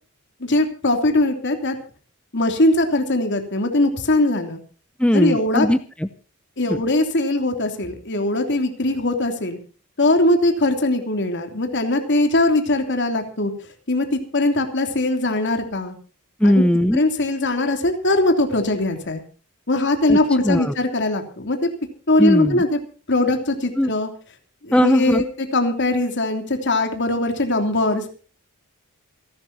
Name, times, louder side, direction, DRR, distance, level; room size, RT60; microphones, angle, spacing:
voice 1, 0.4-1.8 2.3-4.6 5.1-5.7 6.6-9.6 10.0-13.5 13.9-15.9 16.4-16.6 16.9-19.2 19.7-21.7 22.1-22.8 23.1-24.1 24.6-28.0, left 2 dB, 55° left, 5 dB, 3.1 m, -21 dB
voice 2, 5.0-6.1 6.7-6.8 16.4-17.0 20.1-20.2 20.4-20.7 22.2-22.6 23.8-23.9 24.7-25.2, equal, 5° left, 11 dB, 0.6 m, -18 dB
28.0 x 12.0 x 2.8 m, 0.39 s
head